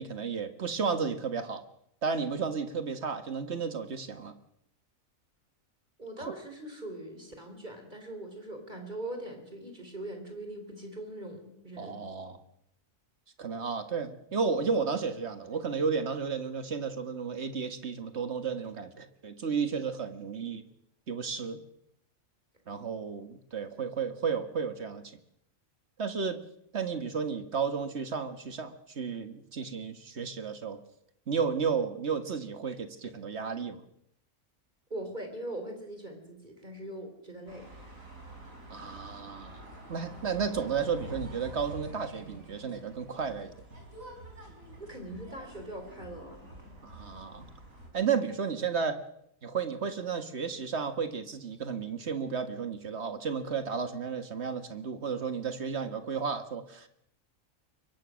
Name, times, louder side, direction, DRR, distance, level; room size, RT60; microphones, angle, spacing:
voice 1, 0.0-1.7 2.0-4.3 6.2-6.3 11.8-12.4 13.4-20.6 21.1-21.6 22.7-25.1 26.0-26.4 26.7-30.8 31.3-33.8 38.7-43.6 46.8-47.5 47.9-49.0 49.4-56.9, right 6 dB, 55° right, 9 dB, 1.9 m, -33 dB
voice 2, 6.0-12.0 34.9-37.7 44.8-46.4, right 1 dB, 35° right, 5 dB, 3.9 m, -41 dB
sound 1, 37.5-47.9, right 1 dB, 80° right, 5.9 m, -47 dB
25.0 x 22.5 x 6.4 m, 0.77 s
omnidirectional pair, 1.4 m